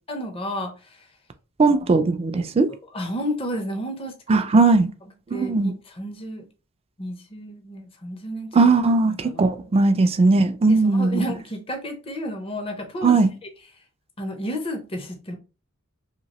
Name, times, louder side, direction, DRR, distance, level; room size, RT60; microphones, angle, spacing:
voice 1, 0.1-0.7 2.3-2.5 2.9-4.5 5.3-6.4 7.0-8.5 9.1-9.4 10.7-13.2 14.2-15.4, equal, 25° left, 0.6 m, -31 dB
voice 2, 1.6-2.7 4.3-4.9 5.3-5.7 8.5-11.2 13.0-13.3, right 3 dB, 25° right, 0.3 m, -18 dB
2.9 x 2.7 x 2.9 m
head